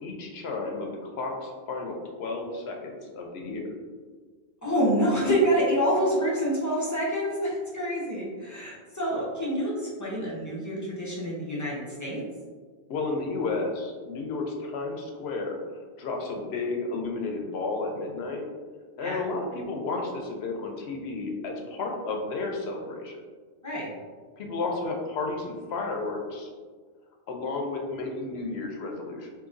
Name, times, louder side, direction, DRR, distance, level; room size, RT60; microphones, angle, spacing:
voice 1, 0.0-3.7 12.9-15.6 16.0-18.4 19.0-23.2 24.4-26.5 27.3-29.3, left 3 dB, 85° left, 2 dB, 0.9 m, -32 dB
voice 2, 4.6-12.2 19.0-19.2 23.6-23.9, equal, 20° left, -6 dB, 0.7 m, -27 dB
3.8 x 2.7 x 2.5 m, 1.5 s
omnidirectional pair, 1.0 m